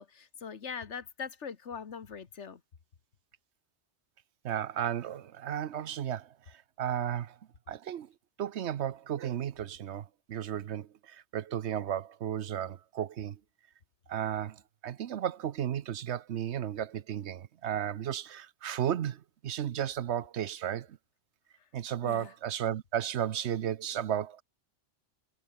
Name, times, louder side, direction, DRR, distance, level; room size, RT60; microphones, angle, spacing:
voice 1, 0.0-2.6 22.0-22.3, left 6 dB, 80° left, 1.7 m, -41 dB
voice 2, 4.4-7.4 7.7-8.1 8.4-13.4 14.1-21.0 21.7-24.4, right 10 dB, 75° right, 1.0 m, -34 dB
omnidirectional pair, 1.2 m